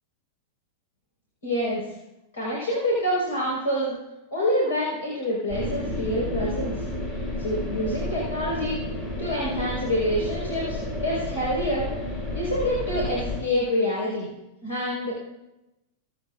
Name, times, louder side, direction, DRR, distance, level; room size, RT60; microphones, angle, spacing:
voice 1, 1.4-1.9 2.3-3.9 4.3-6.8 7.4-8.8 9.2-11.9 12.3-14.3 14.6-15.1, equal, 70° left, -5 dB, 4.3 m, -26 dB
sound 1, 5.5-13.4, left 1 dB, 45° left, 4.3 m, -31 dB
23.0 x 9.1 x 2.5 m, 0.95 s
figure-of-eight pair, 95°, 0 cm